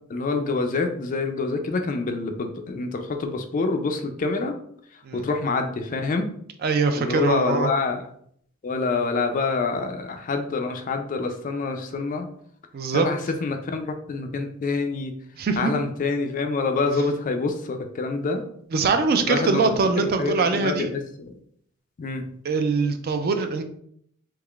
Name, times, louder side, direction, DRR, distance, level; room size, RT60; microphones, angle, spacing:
voice 1, 0.1-4.5 5.1-6.3 6.9-8.0 8.6-12.3 12.9-15.1 15.6-18.4 19.2-20.9 21.2-21.3 22.0-22.3, left 3 dB, 35° left, 6 dB, 0.3 m, -26 dB
voice 2, 6.6-7.7 12.7-13.1 15.4-15.7 18.7-20.9 22.4-23.6, right 4 dB, 45° right, 7 dB, 0.3 m, -23 dB
3.6 x 3.1 x 2.3 m, 0.67 s
head